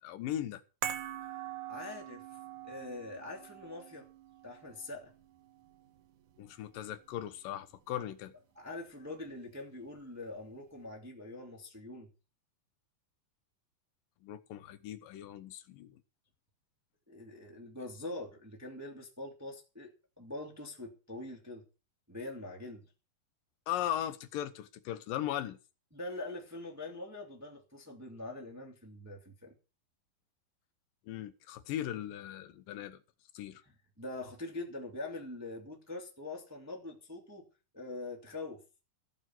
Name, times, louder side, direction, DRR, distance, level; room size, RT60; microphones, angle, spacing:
voice 1, 0.0-0.6 6.4-8.3 14.2-16.0 23.7-25.6 31.1-33.0 33.3-33.6, left 11 dB, 70° left, 2.6 m, -38 dB
sound 1, 0.8-7.2 7.5-7.6, right 10 dB, 65° right, 2.4 m, -44 dB
voice 2, 1.4-2.2 2.6-4.1 4.4-5.1 8.6-12.1 17.1-19.9 20.2-21.6 22.1-22.8 25.9-29.5 34.0-37.5 37.7-38.6, left 2 dB, 5° right, 1.9 m, -43 dB
15.0 x 8.0 x 6.0 m
omnidirectional pair, 4.3 m